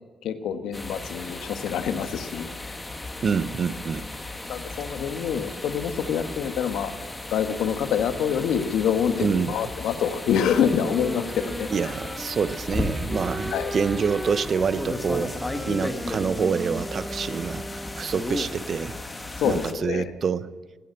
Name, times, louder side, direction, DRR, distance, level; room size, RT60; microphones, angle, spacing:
voice 1, 0.2-2.8 4.5-6.9 7.3-11.7 13.5-13.7 19.4-20.1, left 8 dB, 80° left, 9 dB, 1.3 m, -26 dB
sound 1, 0.7-19.7, left 2 dB, 15° left, 1.5 m, -35 dB
voice 2, 3.2-4.1 9.2-9.5 11.7-17.7 18.0-18.9 19.4-20.5, right 6 dB, 50° right, 16 dB, 0.7 m, -26 dB
sound 2, 10.3-18.3, right 1 dB, 10° right, 1.2 m, -36 dB
15.5 x 9.5 x 9.7 m, 1.4 s
cardioid pair, 90°, 0 cm